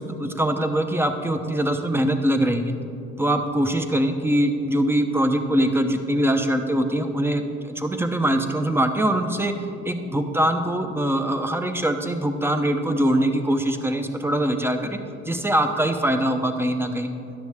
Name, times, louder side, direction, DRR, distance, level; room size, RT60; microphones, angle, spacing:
voice 1, 0.0-2.7 3.2-7.4 7.7-9.5 9.8-15.0 15.3-17.1, right 1 dB, 10° right, 6 dB, 0.8 m, -23 dB
13.0 x 10.0 x 3.6 m, 2.7 s
cardioid pair, 90°, 30 cm